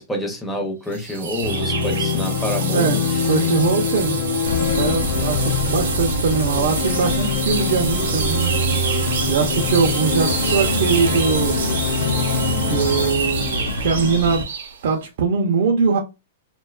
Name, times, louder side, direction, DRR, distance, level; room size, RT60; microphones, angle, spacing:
voice 1, 0.0-3.2, left 1 dB, 5° left, 0.5 m, -28 dB
sound 1, 0.9-14.8, right 5 dB, 85° right, 0.8 m, -28 dB
sound 2, 1.4-13.1, left 3 dB, 50° left, 0.7 m, -24 dB
voice 2, 3.2-4.2 4.7-8.9 9.3-11.6 12.6-14.4 14.8-16.0, right 5 dB, 55° right, 0.5 m, -21 dB
sound 3, 4.4-14.4, left 4 dB, 90° left, 0.6 m, -27 dB
2.7 x 2.2 x 2.2 m
supercardioid pair, 165°, 0 cm